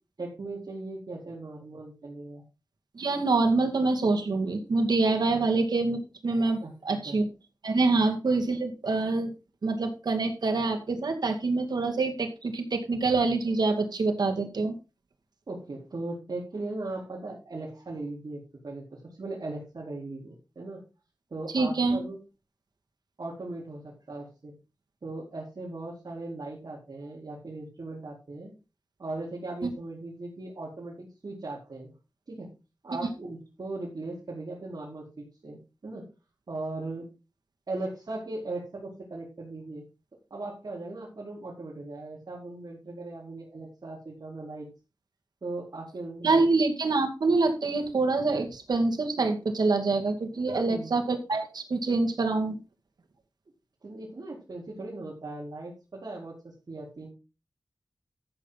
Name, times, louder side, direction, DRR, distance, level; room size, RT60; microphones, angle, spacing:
voice 1, 0.2-2.4 5.3-5.4 6.6-7.2 15.5-20.8 21.3-22.2 23.2-24.5 25.0-28.5 29.0-31.9 32.3-32.5 32.8-36.1 36.5-37.1 37.7-39.8 40.3-44.7 45.4-46.4 50.5-50.9 53.8-57.1, right 2 dB, 70° right, -4 dB, 4.5 m, -38 dB
voice 2, 2.9-7.3 7.6-9.3 9.6-14.7 21.5-22.0 29.6-29.7 46.2-52.6, right 3 dB, 90° right, 4 dB, 2.3 m, -26 dB
13.5 x 7.4 x 4.1 m, 0.30 s
cardioid pair, 50°, 7 cm